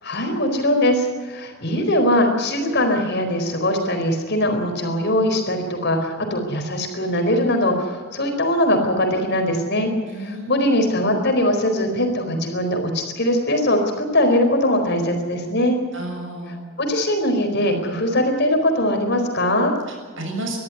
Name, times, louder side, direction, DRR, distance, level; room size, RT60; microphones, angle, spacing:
voice 1, 0.0-9.9 10.2-15.8 16.8-19.7, left 1 dB, 55° left, 4 dB, 4.4 m, -21 dB
voice 2, 10.1-10.7 15.9-16.6 19.9-20.6, right 1 dB, 65° right, 2 dB, 7.0 m, -32 dB
22.0 x 14.0 x 9.5 m, 1.5 s
head